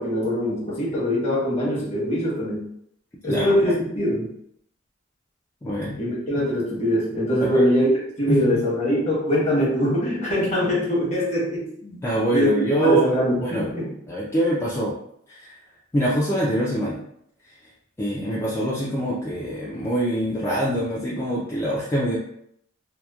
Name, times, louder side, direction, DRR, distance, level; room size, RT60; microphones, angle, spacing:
voice 1, 0.0-2.7 3.2-4.3 6.0-12.0 12.3-12.5 12.8-13.9, equal, 35° left, -5 dB, 0.9 m, -23 dB
voice 2, 3.2-3.7 5.6-6.0 7.4-7.7 8.3-8.6 12.0-13.1 13.4-13.7 14.1-15.0 15.3-15.5 15.9-17.0 18.0-22.2, right 1 dB, 15° left, -6 dB, 0.3 m, -24 dB
2.8 x 2.1 x 2.3 m, 0.70 s
head